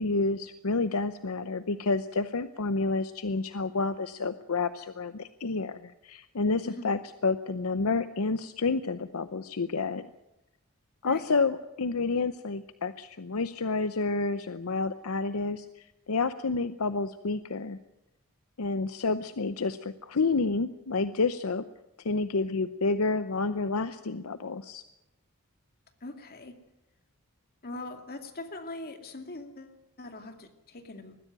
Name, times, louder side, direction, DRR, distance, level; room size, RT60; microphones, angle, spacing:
voice 1, 0.0-10.1 11.0-17.8 18.6-21.6 22.0-24.8, left 3 dB, 70° left, 11 dB, 0.8 m, -29 dB
voice 2, 26.0-26.6 27.6-31.1, left 2 dB, 45° left, 6 dB, 2.3 m, -42 dB
20.5 x 15.0 x 9.1 m, 0.91 s
head